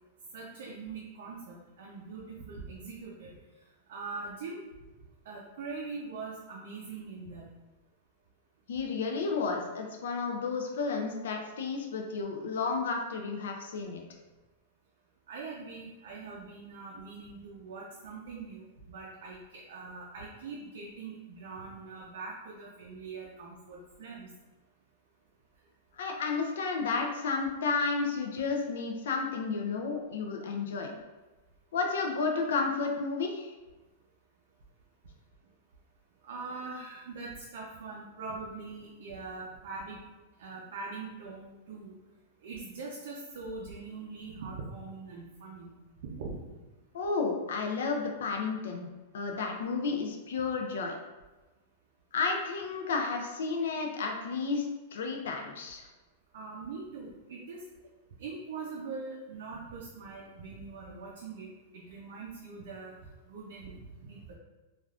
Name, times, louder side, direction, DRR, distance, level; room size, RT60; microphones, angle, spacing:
voice 1, 0.3-3.3 3.9-4.6 5.2-7.5 15.3-24.3 36.2-40.0 40.4-41.9 42.4-45.7 46.0-46.4 56.3-57.6 58.2-63.0 63.2-64.3, right 4 dB, 55° right, -3 dB, 0.5 m, -42 dB
voice 2, 8.7-14.0 26.0-30.9 31.7-33.5 46.9-48.9 49.1-51.0 52.1-54.6 54.9-55.9, left 4 dB, 75° left, 2 dB, 0.4 m, -32 dB
3.3 x 2.4 x 2.3 m, 1.2 s
supercardioid pair, 180°, 0 cm